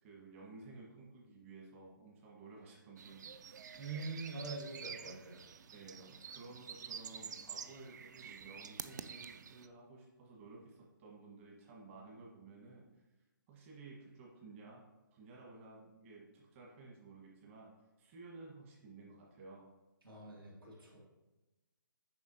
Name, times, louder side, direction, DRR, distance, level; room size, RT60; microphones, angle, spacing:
voice 1, 0.0-3.2 5.7-13.0 13.5-14.8 15.1-17.7 18.0-19.7, right 3 dB, 35° right, -3 dB, 1.5 m, -54 dB
sound 1, 3.0-9.7, right 7 dB, 55° right, 0.4 m, -49 dB
voice 2, 3.8-5.4 20.0-21.1, right 3 dB, 85° right, -2 dB, 2.0 m, -44 dB
6.9 x 5.3 x 2.8 m, 1.1 s
hypercardioid pair, 145°, 11 cm